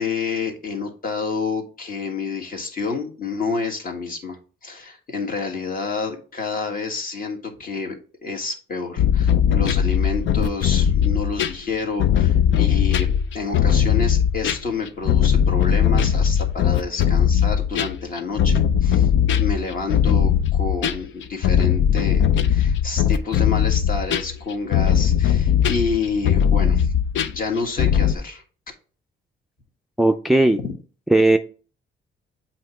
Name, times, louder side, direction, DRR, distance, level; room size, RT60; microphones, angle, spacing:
voice 1, 0.0-19.1 19.4-26.9 27.2-28.4, left 4 dB, 45° left, 3 dB, 1.6 m, -29 dB
sound 1, 9.0-28.1, left 8 dB, 75° left, 0.6 m, -19 dB
voice 2, 30.0-30.6 31.1-31.4, right 2 dB, ahead, 7 dB, 0.4 m, -16 dB
7.6 x 2.9 x 4.4 m, 0.39 s
cardioid pair, 90°, 20 cm